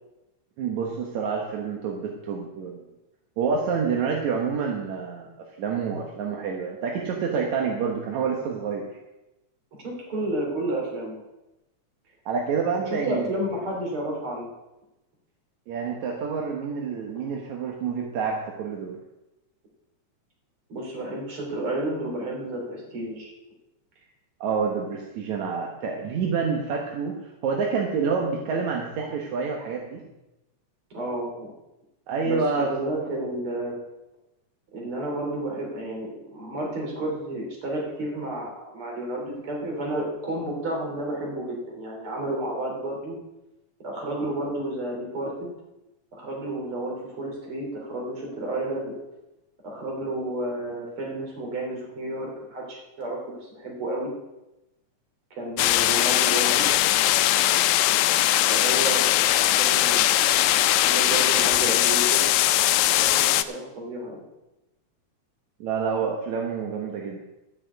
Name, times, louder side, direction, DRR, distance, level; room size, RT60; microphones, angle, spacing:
voice 1, 0.6-2.8 3.4-5.3 5.6-8.9 12.3-13.3 15.7-19.0 24.4-27.2 27.4-30.0 32.1-32.7 33.0-33.1 65.6-67.2, right 5 dB, 75° right, 0 dB, 2.6 m, -28 dB
voice 2, 9.8-11.2 12.8-14.5 20.7-23.3 30.9-31.6 32.2-33.8 34.7-43.2 43.8-45.5 46.1-48.9 49.6-54.1 55.3-56.6 58.5-60.3 60.8-62.3 62.9-64.2, right 1 dB, 45° right, -1 dB, 4.2 m, -31 dB
sound 1, 55.6-63.4, left 14 dB, 85° left, 1.9 m, -20 dB
13.5 x 6.4 x 8.1 m, 0.96 s
omnidirectional pair, 3.3 m